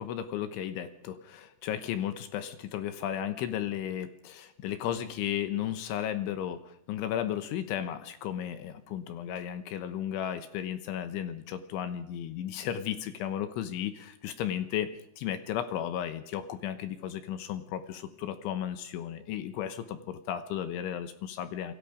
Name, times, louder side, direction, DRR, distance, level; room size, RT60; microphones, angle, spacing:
voice 1, 0.0-21.7, left 10 dB, 75° left, 10 dB, 3.4 m, -34 dB
28.5 x 22.5 x 5.2 m, 0.71 s
omnidirectional pair, 5.8 m